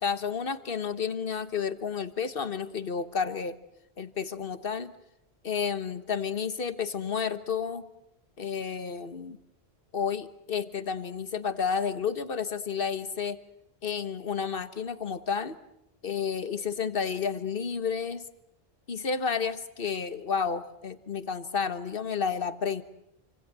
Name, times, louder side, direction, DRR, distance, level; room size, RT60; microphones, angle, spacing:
voice 1, 0.0-3.6 4.0-4.9 5.4-7.9 8.4-9.4 9.9-13.4 13.8-15.6 16.0-18.3 18.9-22.8, left 6 dB, 60° left, 11 dB, 1.5 m, -31 dB
28.0 x 25.0 x 7.6 m, 0.82 s
omnidirectional pair, 1.1 m